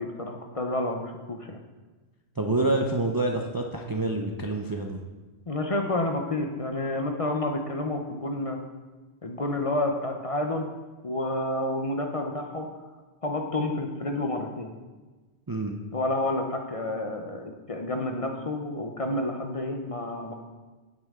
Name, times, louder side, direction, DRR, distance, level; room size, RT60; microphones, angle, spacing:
voice 1, 0.0-1.6 5.5-8.6 9.2-10.7 11.0-12.7 13.2-14.7 15.9-20.3, left 1 dB, 35° left, 3 dB, 0.7 m, -29 dB
voice 2, 2.4-5.0 15.5-15.8, right 2 dB, 25° right, 2 dB, 0.5 m, -27 dB
8.9 x 8.8 x 3.6 m, 1.3 s
omnidirectional pair, 1.1 m